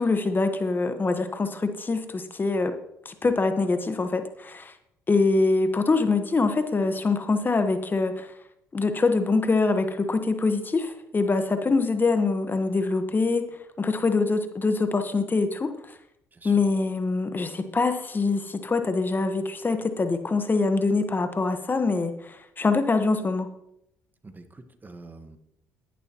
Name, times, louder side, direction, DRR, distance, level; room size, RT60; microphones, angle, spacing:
voice 1, 0.0-2.7 3.0-4.7 5.1-8.3 8.7-13.4 13.8-15.7 16.4-23.5, left 3 dB, 30° left, 8 dB, 1.3 m, -24 dB
voice 2, 24.2-25.4, right 3 dB, 25° right, 8 dB, 1.4 m, -46 dB
15.0 x 11.0 x 3.0 m, 0.80 s
hypercardioid pair, 60°, 7 cm